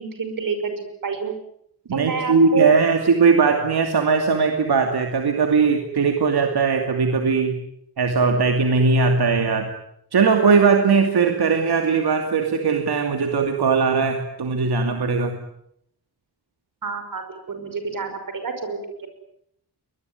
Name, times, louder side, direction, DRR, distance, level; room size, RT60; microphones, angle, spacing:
voice 1, 0.0-1.3 1.9-2.7 16.8-18.8, right 6 dB, 55° right, 8 dB, 5.7 m, -27 dB
voice 2, 1.9-7.6 8.0-9.7 10.1-15.4, right 5 dB, 70° right, 4 dB, 2.7 m, -19 dB
23.5 x 21.0 x 9.6 m, 0.74 s
wide cardioid pair, 170°, 40 cm